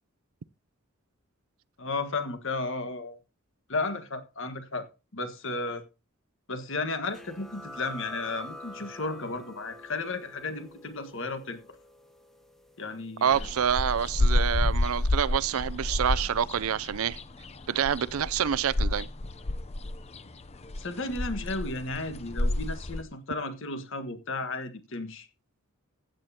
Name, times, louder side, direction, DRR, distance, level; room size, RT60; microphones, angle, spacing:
voice 1, 1.8-3.2 3.7-4.9 5.1-5.8 6.5-11.6 12.8-13.5 20.8-25.3, left 3 dB, 60° left, 1.6 m, -34 dB
sound 1, 7.1-14.4, left 1 dB, ahead, 1.3 m, -47 dB
voice 2, 13.2-17.2 17.7-19.1, right 8 dB, 75° right, 0.5 m, -27 dB
sound 2, 13.3-23.0, left 1 dB, 30° left, 0.6 m, -29 dB
15.5 x 9.1 x 2.9 m
head